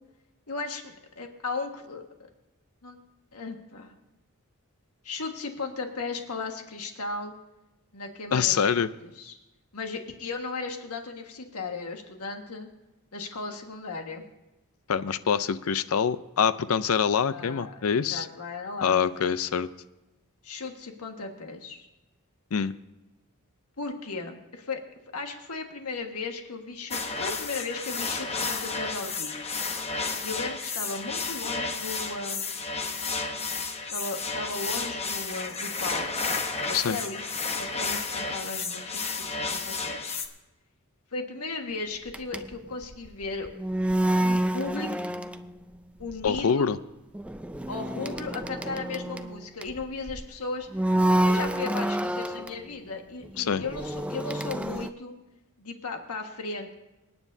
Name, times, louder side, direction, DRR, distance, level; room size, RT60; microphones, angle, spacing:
voice 1, 0.5-2.0 2.8-3.0 3.3-3.9 5.0-7.3 7.9-8.7 9.0-9.4 9.7-12.7 13.1-14.2 17.3-19.3 20.4-21.9 23.8-24.8 25.1-29.4 30.2-32.7 33.9-36.1 36.6-37.2 37.5-40.2 41.1-43.5 44.2-44.9 46.0-46.7 47.7-50.7 51.2-55.1 55.6-56.7, left 3 dB, 90° left, 3 dB, 1.6 m, -36 dB
voice 2, 8.3-8.9 14.9-18.3 18.8-19.7 22.5-22.7 36.7-37.0 46.2-46.8 53.4-53.6, left 7 dB, 70° left, 14 dB, 0.5 m, -25 dB
sound 1, 26.9-40.3, left 4 dB, 30° left, 1.0 m, -32 dB
sound 2, 42.1-45.8 46.0-46.4 47.1-50.2 50.7-52.6 53.2-54.9, right 1 dB, 5° right, 0.3 m, -28 dB
26.5 x 9.4 x 2.7 m, 1.0 s
head